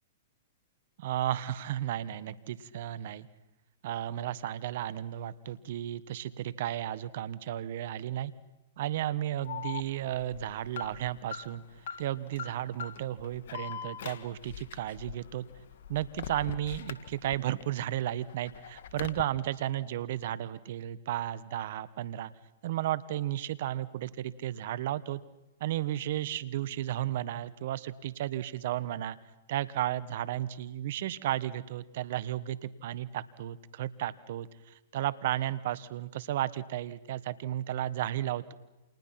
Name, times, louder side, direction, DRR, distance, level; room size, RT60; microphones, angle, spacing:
voice 1, 1.0-3.3 3.8-8.3 8.8-11.6 12.0-15.4 15.9-22.3 22.6-25.2 25.6-29.2 29.5-38.5, right 12 dB, 60° right, 16 dB, 1.4 m, -34 dB
Alarm, 9.4-17.6 18.0-19.2, left 8 dB, 65° left, 1.6 m, -42 dB
29.5 x 27.5 x 6.0 m, 0.97 s
hypercardioid pair, 120°, 0 cm